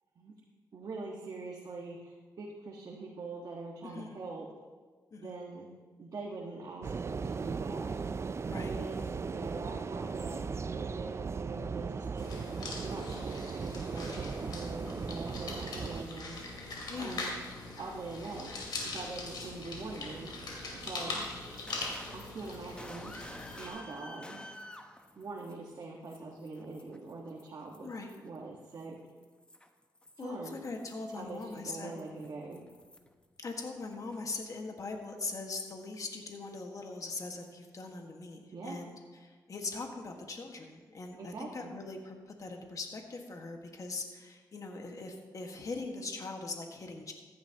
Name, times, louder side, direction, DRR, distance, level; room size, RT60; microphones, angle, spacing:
voice 1, 0.7-4.4 5.2-5.7 6.0-7.9 8.5-12.4 12.8-16.4 17.0-17.4 17.8-20.3 20.7-21.2 22.1-23.1 23.6-24.4 25.2-27.9 28.2-29.0 30.2-30.6 31.1-32.6 38.5-38.8 41.2-41.7, right 3 dB, 60° right, -3 dB, 1.5 m, -43 dB
voice 2, 3.8-4.2 5.1-5.4 8.4-8.8 12.9-13.3 16.9-17.2 21.1-21.4 27.8-28.2 30.2-32.0 33.4-38.9 39.2-47.1, left 3 dB, 50° left, 3 dB, 1.6 m, -41 dB
sound 1, 6.8-16.1, right 5 dB, 40° right, 0.4 m, -37 dB
sound 2, 12.2-23.7, left 2 dB, 75° left, 2.5 m, -42 dB
sound 3, 21.2-25.7 26.0-28.3 28.7-33.2 33.5-34.3, left 1 dB, 15° left, 0.9 m, -51 dB
14.5 x 10.5 x 2.9 m, 1.4 s
cardioid pair, 75°, 7 cm